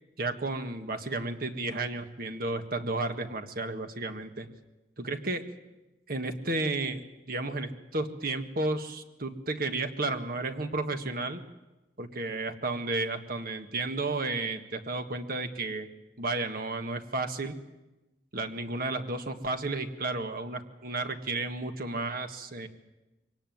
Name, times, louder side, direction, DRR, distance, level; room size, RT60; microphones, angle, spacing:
voice 1, 0.2-4.5 5.0-5.4 6.1-7.0 7.3-11.4 12.0-15.9 16.2-17.6 18.3-22.7, right 2 dB, 55° right, 7 dB, 1.6 m, -32 dB
23.5 x 18.0 x 9.3 m, 1.0 s
head